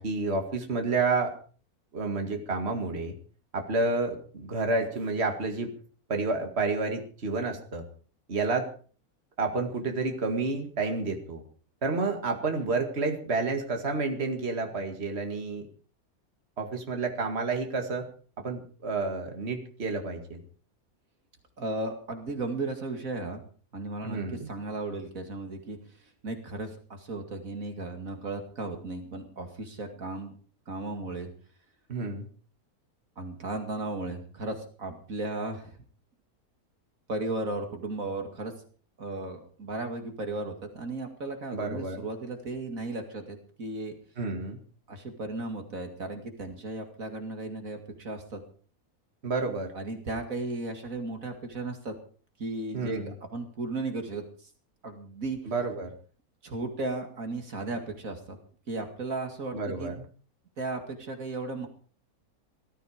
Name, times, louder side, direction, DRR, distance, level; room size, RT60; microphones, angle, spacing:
voice 1, 0.0-1.3 1.9-3.1 3.5-5.7 6.1-7.8 8.3-8.7 9.4-11.4 11.8-15.6 16.6-18.0 18.4-20.4 24.0-24.5 31.9-32.2 41.5-42.0 44.2-44.6 49.2-49.7 52.7-53.1 55.5-55.9 59.5-60.0, right 3 dB, 45° right, 4 dB, 2.3 m, -30 dB
voice 2, 21.6-23.4 23.7-25.8 26.2-30.4 30.7-31.3 33.2-35.8 37.1-38.5 39.0-43.9 44.9-48.4 49.7-51.9 52.4-54.2 54.8-55.4 56.4-58.4 58.7-59.9 60.6-61.7, right 2 dB, 60° right, 5 dB, 2.7 m, -35 dB
18.5 x 13.5 x 5.0 m, 0.42 s
omnidirectional pair, 1.6 m